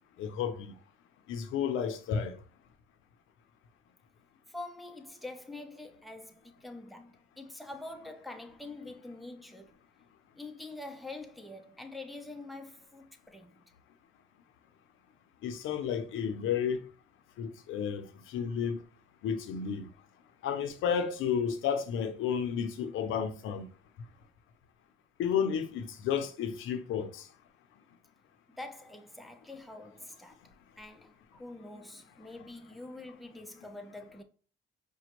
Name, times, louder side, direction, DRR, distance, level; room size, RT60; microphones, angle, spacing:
voice 1, 0.2-0.7 1.3-2.4 15.4-16.8 17.4-18.8 19.2-19.9 20.4-23.7 25.2-27.3, left 7 dB, 85° left, 0.6 m, -32 dB
voice 2, 4.5-9.8 10.4-13.6 28.6-30.4 30.8-34.2, left 2 dB, ahead, 0.6 m, -45 dB
5.0 x 2.2 x 3.0 m
cardioid pair, 90°, 20 cm